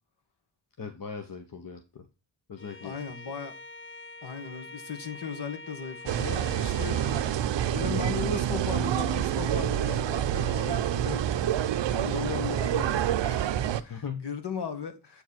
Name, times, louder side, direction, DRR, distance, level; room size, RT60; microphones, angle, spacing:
voice 1, 0.8-2.1 2.5-3.0 13.7-14.3, left 6 dB, 50° left, 1.1 m, -39 dB
Bowed string instrument, 2.6-7.5, left 2 dB, 30° left, 1.1 m, -45 dB
voice 2, 2.8-3.6 4.2-11.2 11.6-15.2, left 6 dB, 65° left, 2.0 m, -37 dB
sound 1, 6.1-13.8, right 10 dB, 80° right, 0.6 m, -27 dB
8.0 x 4.7 x 4.4 m
cardioid pair, 65°, 43 cm